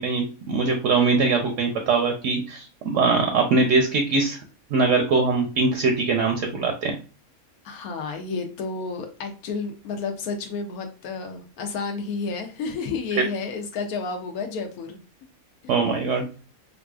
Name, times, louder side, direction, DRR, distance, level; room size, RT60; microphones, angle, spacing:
voice 1, 0.0-4.4 4.7-6.9 15.7-16.2, right 4 dB, 70° right, 3 dB, 0.8 m, -22 dB
voice 2, 7.6-15.0, left 4 dB, 85° left, 4 dB, 1.1 m, -31 dB
4.0 x 2.5 x 2.3 m, 0.36 s
omnidirectional pair, 1.5 m